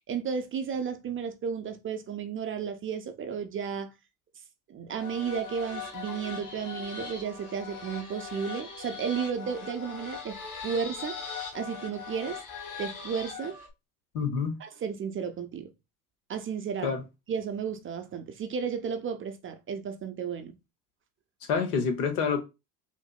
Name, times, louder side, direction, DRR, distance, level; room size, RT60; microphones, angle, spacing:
voice 1, 0.1-3.9 4.7-10.4 10.6-11.2 11.5-12.4 12.8-13.6 14.6-15.7 16.3-16.9 17.3-20.5, right 7 dB, 30° right, 0.4 m, -33 dB
sound 1, 5.0-13.7, left 5 dB, 40° left, 1.5 m, -40 dB
voice 2, 14.1-14.6 16.8-17.0 21.5-22.4, left 6 dB, 75° left, 1.0 m, -27 dB
4.8 x 2.0 x 2.3 m
hypercardioid pair, 75°, 45 cm